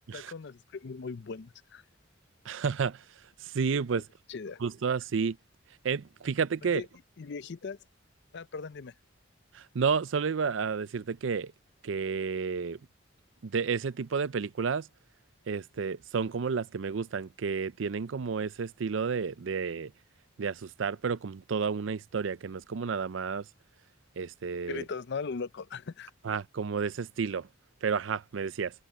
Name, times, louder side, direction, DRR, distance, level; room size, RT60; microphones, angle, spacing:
voice 1, 0.1-1.8 3.9-4.0 4.3-4.6 6.6-6.9 7.2-7.8 8.3-8.9 24.6-26.1, left 5 dB, 60° left, 0.5 m, -39 dB
voice 2, 2.5-3.0 3.4-4.0 4.6-5.4 5.8-6.8 9.5-11.5 11.8-12.8 13.4-14.9 15.5-19.9 20.4-23.4 24.2-24.8 26.2-27.5 27.8-28.7, right 5 dB, 70° right, 0.5 m, -31 dB
head